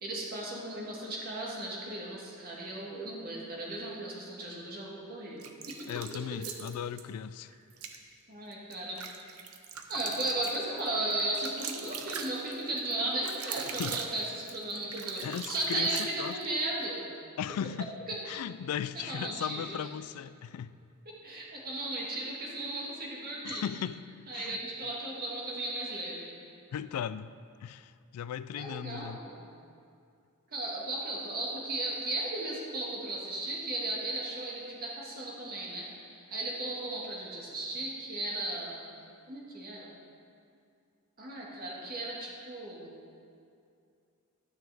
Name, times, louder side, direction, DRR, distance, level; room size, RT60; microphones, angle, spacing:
voice 1, 0.0-5.9 6.5-6.6 8.3-9.0 9.9-17.1 18.1-18.2 18.9-19.8 21.0-23.6 24.3-26.3 28.6-29.5 30.5-38.8 39.3-39.9 41.2-42.9, right 2 dB, 45° right, 1.7 m, -36 dB
sound 1, 5.4-7.0 7.7-8.0 8.5-16.5, right 7 dB, 75° right, 0.7 m, -41 dB
voice 2, 5.9-7.5 13.8-14.0 15.2-16.4 17.4-17.9 18.3-20.7 23.4-24.6 26.7-27.3 27.6-29.2, left 8 dB, 80° left, 0.3 m, -37 dB
11.0 x 9.3 x 3.5 m
head